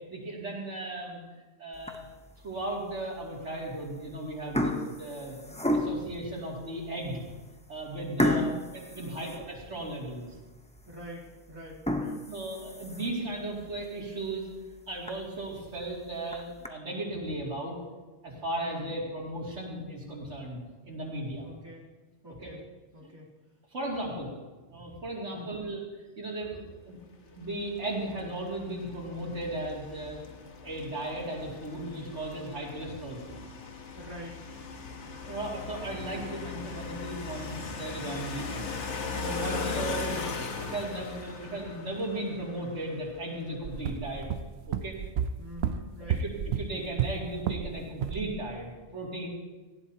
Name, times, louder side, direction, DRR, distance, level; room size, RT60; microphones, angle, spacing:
voice 1, 0.1-1.2 1.6-2.0 2.4-5.4 5.7-7.2 7.7-10.3 12.3-14.5 14.9-17.7 18.2-21.5 22.4-22.5 23.0-23.1 23.7-24.3 24.7-25.8 26.2-27.0 27.2-30.2 30.6-33.4 35.2-38.7 39.1-40.3 40.6-44.3 44.7-45.0 46.0-49.3, right 1 dB, 85° right, -3 dB, 2.9 m, -36 dB
sound 1, 1.7-2.3 2.8-3.0 3.8-4.1 4.3-6.2 6.8-6.9 7.3-7.4 8.2-9.9 10.4-10.5 10.9-11.0 11.7-13.3 13.7-13.8 14.2-14.3 14.7-14.8 15.1-15.2 16.1-16.7, left 1 dB, 5° left, 0.6 m, -31 dB
voice 2, 8.2-8.6 8.9-9.3 10.9-12.2 18.6-18.9 21.4-21.9 22.2-22.6 22.9-23.3 25.3-25.7 33.9-34.4 39.4-39.9 45.4-46.2, equal, 20° right, -5 dB, 3.0 m, -44 dB
sound 2, 27.4-43.6, left 4 dB, 80° left, 1.5 m, -39 dB
sound 3, 43.6-47.7 48.0-48.3, right 8 dB, 65° right, 0.8 m, -31 dB
18.5 x 15.0 x 2.8 m, 1.2 s
omnidirectional pair, 1.2 m